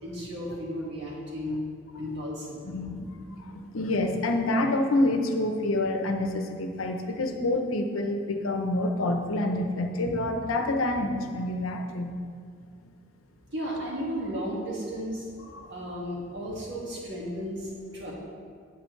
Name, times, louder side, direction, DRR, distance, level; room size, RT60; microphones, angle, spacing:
voice 1, 0.0-1.7 2.0-2.7 13.5-15.3 15.7-18.1, equal, 55° right, -4 dB, 2.0 m, -34 dB
voice 2, 2.6-12.1 15.5-15.7, left 2 dB, 85° left, 4 dB, 0.8 m, -27 dB
9.6 x 7.4 x 3.2 m, 2.1 s
head